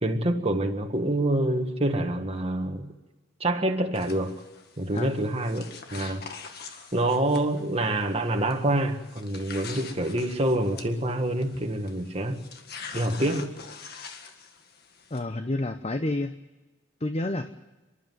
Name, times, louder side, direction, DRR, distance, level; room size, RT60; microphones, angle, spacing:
voice 1, 0.0-2.9 3.4-4.4 4.8-5.6 5.9-6.2 6.9-12.5 12.9-13.5, right 1 dB, 30° right, 1.7 m, -26 dB
sound 1, 3.9-15.2, left 5 dB, 55° left, 1.9 m, -44 dB
voice 2, 15.1-16.3 17.0-17.5, left 2 dB, 30° left, 0.8 m, -29 dB
30.0 x 12.0 x 9.3 m
head